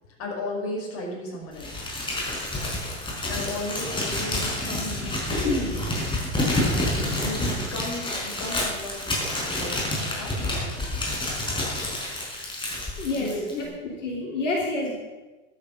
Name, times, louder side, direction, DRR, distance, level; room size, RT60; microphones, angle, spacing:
voice 1, 0.2-1.9 3.2-5.8 6.2-10.8 13.1-13.7, left 2 dB, 40° left, -2 dB, 5.7 m, -34 dB
Crumpling crinkling, 1.6-13.6, left 1 dB, 15° left, 5.4 m, -28 dB
voice 2, 13.0-13.3 13.6-14.9, left 2 dB, 80° left, -3 dB, 3.2 m, -28 dB
11.5 x 10.5 x 6.6 m, 1.2 s
hypercardioid pair, 90°, 36 cm